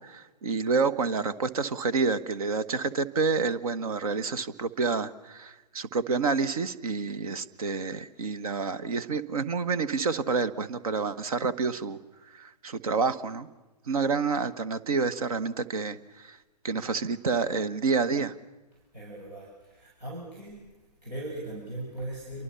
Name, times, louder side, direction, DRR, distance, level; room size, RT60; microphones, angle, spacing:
voice 1, 0.0-12.0 12.3-13.5 13.9-16.4 16.6-18.3, right 4 dB, 60° right, 13 dB, 1.5 m, -28 dB
voice 2, 18.9-20.6 21.0-22.4, right 1 dB, 75° right, -3 dB, 7.9 m, -39 dB
29.5 x 24.0 x 7.0 m, 1.1 s
figure-of-eight pair, 120°, 21 cm